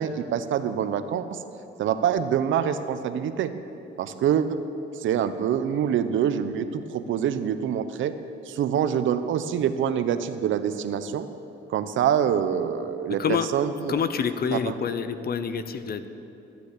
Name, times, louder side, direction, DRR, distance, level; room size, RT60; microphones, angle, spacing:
voice 1, 0.0-1.4 1.8-3.5 4.0-4.6 5.0-8.1 8.5-11.3 11.7-14.0 14.5-14.8, right 9 dB, 75° right, 11 dB, 0.8 m, -25 dB
voice 2, 13.9-16.1, left 6 dB, 50° left, 11 dB, 0.9 m, -27 dB
13.5 x 9.3 x 8.3 m, 2.8 s
cardioid pair, 90°, 20 cm